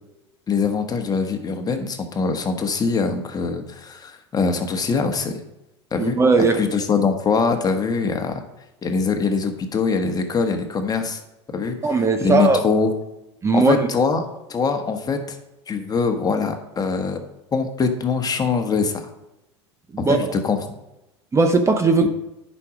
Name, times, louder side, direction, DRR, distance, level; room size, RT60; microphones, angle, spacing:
voice 1, 0.5-5.4 5.9-6.2 6.5-8.4 8.8-11.2 11.5-12.9 13.5-14.2 14.5-15.4 15.7-17.2 17.5-19.1 20.0-20.6 22.0-22.1, left 5 dB, 25° left, 5 dB, 1.4 m, -23 dB
voice 2, 6.0-6.6 11.8-12.6 13.4-13.9 19.9-20.2 21.3-22.1, right 4 dB, 20° right, 6 dB, 0.9 m, -18 dB
9.7 x 5.5 x 5.0 m, 0.93 s
hypercardioid pair, 85°, 15 cm